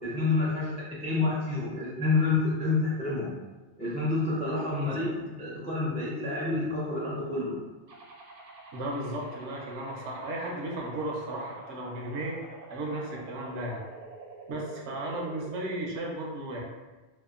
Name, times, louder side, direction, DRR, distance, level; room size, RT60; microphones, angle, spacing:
voice 1, 0.0-3.3 3.8-7.6, left 3 dB, 10° left, -7 dB, 0.3 m, -28 dB
sound 1, 7.9-15.9, right 3 dB, 40° right, 0.5 m, -47 dB
voice 2, 8.7-12.4 12.7-13.8 14.5-16.6, right 1 dB, 80° right, -1 dB, 0.9 m, -35 dB
2.7 x 2.2 x 2.4 m, 1.2 s
omnidirectional pair, 1.2 m